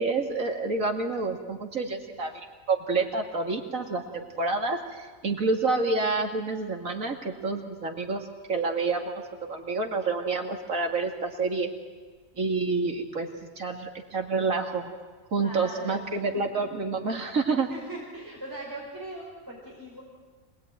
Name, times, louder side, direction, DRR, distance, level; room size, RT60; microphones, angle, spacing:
voice 1, 0.0-2.4 2.7-9.1 9.5-11.7 12.4-13.3 13.6-14.9 15.3-17.7, right 3 dB, 85° right, 3 dB, 2.7 m, -28 dB
voice 2, 15.4-16.3 17.7-20.0, right 1 dB, 15° right, -5 dB, 5.3 m, -40 dB
25.5 x 20.0 x 9.3 m, 1.4 s
omnidirectional pair, 1.4 m